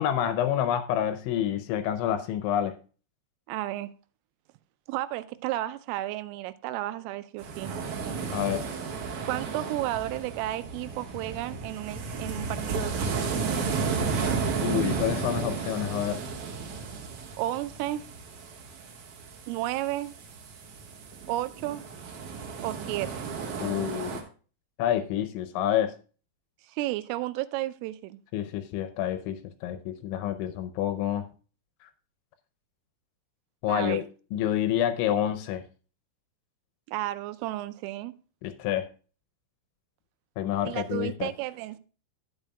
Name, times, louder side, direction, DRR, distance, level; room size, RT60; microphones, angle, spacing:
voice 1, 0.0-2.7 8.3-8.6 14.6-16.2 23.6-24.2 24.8-25.9 28.3-31.3 33.6-34.1 34.3-35.6 38.4-38.8 40.4-41.3, left 10 dB, 80° left, 2.8 m, -28 dB
voice 2, 3.5-3.9 4.9-7.8 9.2-13.4 17.4-18.1 19.5-20.2 21.3-21.9 22.6-23.3 26.7-28.2 33.7-34.0 36.9-38.1 40.6-41.8, right 15 dB, 90° right, 3.2 m, -33 dB
sound 1, 7.4-24.2, right 5 dB, 75° right, 1.8 m, -33 dB
12.0 x 8.9 x 2.2 m
omnidirectional pair, 5.8 m